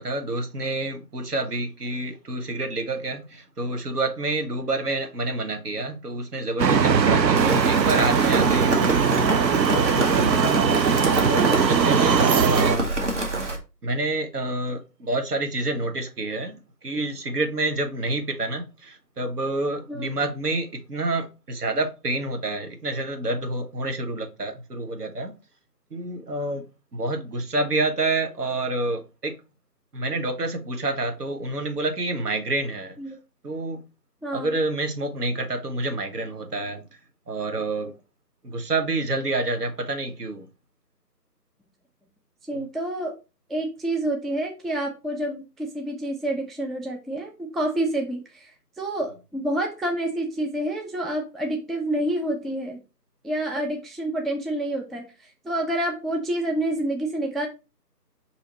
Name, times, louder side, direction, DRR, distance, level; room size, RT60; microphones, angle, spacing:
voice 1, 0.0-9.1 9.7-10.4 11.3-12.9 13.8-25.3 25.9-26.6 26.9-29.3 29.9-33.0 33.4-33.8 34.3-36.8 37.3-37.9 38.4-40.5 42.5-42.6, right 2 dB, 65° right, 1.1 m, -28 dB
sound 1, 6.6-12.8, right 6 dB, 85° right, 0.6 m, -20 dB
Rain, 7.4-13.6, right 1 dB, 45° right, 0.8 m, -27 dB
voice 2, 34.2-34.5 42.5-43.1 43.5-52.8 53.2-57.5, right 1 dB, ahead, 0.4 m, -28 dB
5.8 x 2.8 x 2.9 m
figure-of-eight pair, 165°, 50 cm